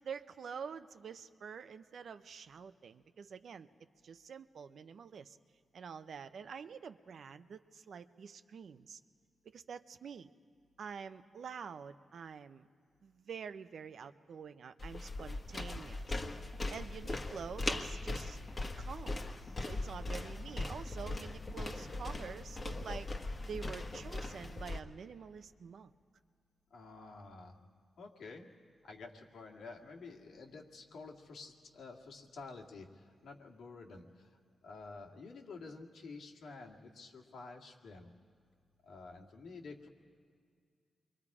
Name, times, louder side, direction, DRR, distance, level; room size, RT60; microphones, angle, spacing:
voice 1, 0.0-3.7 4.0-5.4 5.7-9.0 9.4-10.3 10.8-12.7 13.0-16.2 16.7-18.4 18.8-19.2 19.6-23.1 23.5-25.9, right 6 dB, 70° right, 11 dB, 0.7 m, -47 dB
sound 1, 14.8-24.8, left 2 dB, 35° left, 1.3 m, -40 dB
voice 2, 26.7-27.6 28.0-28.5 28.8-38.1 38.8-39.9, left 3 dB, 85° left, 0 dB, 2.1 m, -50 dB
28.5 x 23.5 x 4.9 m, 2.1 s
wide cardioid pair, 110°, 0 cm